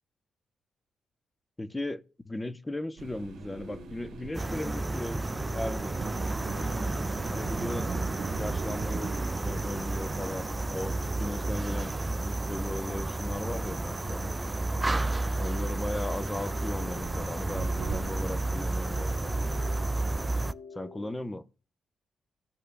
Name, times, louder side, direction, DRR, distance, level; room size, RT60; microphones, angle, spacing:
voice 1, 1.6-5.2 5.5-6.0 7.2-7.9 8.3-11.9 12.3-14.3 15.4-19.3 20.7-21.4, left 1 dB, 15° left, 0.8 m, -37 dB
sound 1, 2.9-21.1, left 5 dB, 60° left, 1.2 m, -49 dB
sound 2, 3.0-20.5, right 6 dB, 75° right, 0.9 m, -42 dB
sound 3, 4.3-20.5, right 2 dB, 20° right, 0.4 m, -32 dB
15.5 x 6.6 x 2.2 m
cardioid pair, 70°, 0 cm